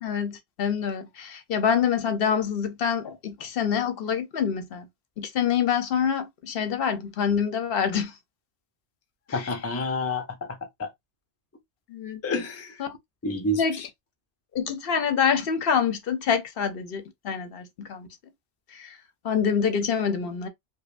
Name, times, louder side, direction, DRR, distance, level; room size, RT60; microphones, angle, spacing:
voice 1, 0.0-4.9 5.2-8.1 9.3-9.4 11.9-12.2 12.8-13.0 13.6-13.8 14.5-18.1 18.7-19.0 19.2-20.5, left 7 dB, 60° left, 0.8 m, -26 dB
voice 2, 9.3-10.9 12.2-12.8 13.2-13.9, left 2 dB, 20° left, 0.5 m, -29 dB
5.1 x 2.2 x 2.4 m
omnidirectional pair, 1.2 m